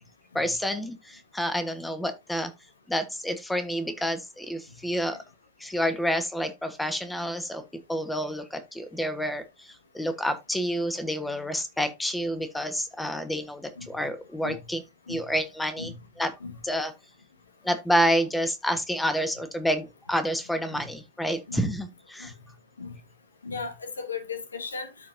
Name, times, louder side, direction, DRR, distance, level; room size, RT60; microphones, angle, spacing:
voice 1, 0.3-2.5 2.9-5.2 5.6-7.6 7.9-14.8 15.1-16.3 16.6-16.9 17.6-22.3, equal, 5° left, 1.4 m, -29 dB
voice 2, 23.4-24.9, left 5 dB, 75° left, 1.2 m, -36 dB
13.5 x 4.6 x 2.7 m
figure-of-eight pair, 90°, 0 cm